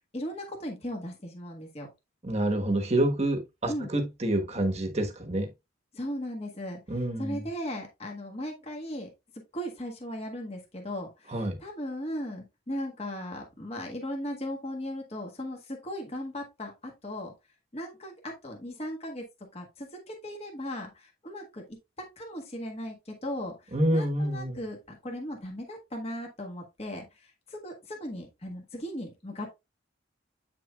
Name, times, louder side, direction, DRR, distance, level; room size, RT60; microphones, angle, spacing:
voice 1, 0.1-1.9 3.7-3.9 5.9-6.8 7.2-9.1 9.5-17.3 17.7-19.2 19.5-21.6 22.0-29.5, equal, 35° left, 1.5 m, -37 dB
voice 2, 2.2-5.5 6.9-7.4 11.3-11.6 23.7-24.6, right 1 dB, 35° right, 1.3 m, -27 dB
8.5 x 6.0 x 2.3 m
head